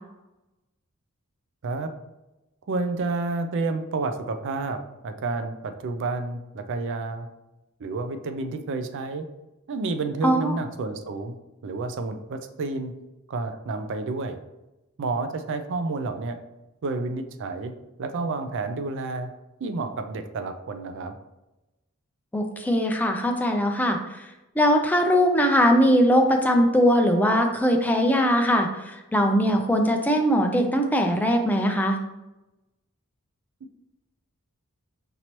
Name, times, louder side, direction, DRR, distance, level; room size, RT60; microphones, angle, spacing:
voice 1, 2.7-7.3 7.8-9.3 9.7-11.3 11.6-12.9 13.3-14.4 15.0-16.4 16.8-17.7 18.0-19.3 19.6-21.1, right 3 dB, 60° right, 8 dB, 0.4 m, -30 dB
voice 2, 10.2-10.6 22.3-24.0 24.6-32.0, equal, 10° left, 3 dB, 0.4 m, -21 dB
5.3 x 2.9 x 3.0 m, 1.0 s
head